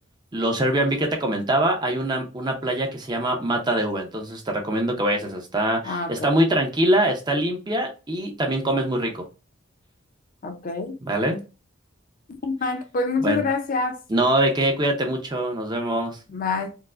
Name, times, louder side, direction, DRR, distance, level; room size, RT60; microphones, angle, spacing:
voice 1, 0.3-9.2 11.0-11.4 13.2-13.4 14.1-16.2, right 1 dB, 20° right, 0.6 m, -23 dB
voice 2, 5.8-6.3 10.4-11.0 12.4-14.0 16.3-16.7, left 4 dB, 40° left, 0.5 m, -26 dB
4.6 x 2.1 x 2.4 m
head